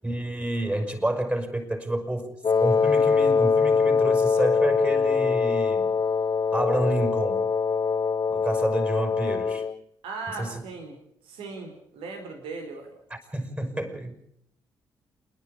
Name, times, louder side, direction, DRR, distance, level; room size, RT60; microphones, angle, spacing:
voice 1, 0.0-2.4 2.6-5.9 6.5-7.5 8.3-9.7 10.3-10.6 13.1-14.1, right 1 dB, 15° right, 5 dB, 6.2 m, -29 dB
Wind instrument woodwind instrument, 2.4-9.8, left 5 dB, 40° left, 0.7 m, -23 dB
voice 2, 10.0-11.0 11.2-12.9, right 4 dB, 75° right, 4 dB, 4.1 m, -38 dB
28.0 x 11.0 x 8.8 m, 0.74 s
hypercardioid pair, 45°, 9 cm